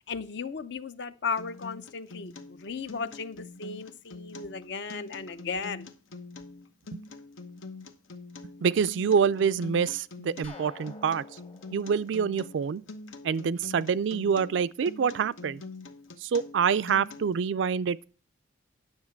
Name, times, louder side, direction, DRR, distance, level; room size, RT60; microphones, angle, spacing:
voice 1, 0.1-5.9, left 5 dB, 60° left, 0.6 m, -35 dB
Acoustic guitar, 1.4-17.4, left 3 dB, 85° left, 0.9 m, -45 dB
voice 2, 8.6-11.2 11.7-12.8 13.2-15.6 16.2-18.0, right 6 dB, 65° right, 0.3 m, -26 dB
sound 1, 10.4-13.2, left 3 dB, 30° left, 1.1 m, -50 dB
9.7 x 6.5 x 4.4 m
head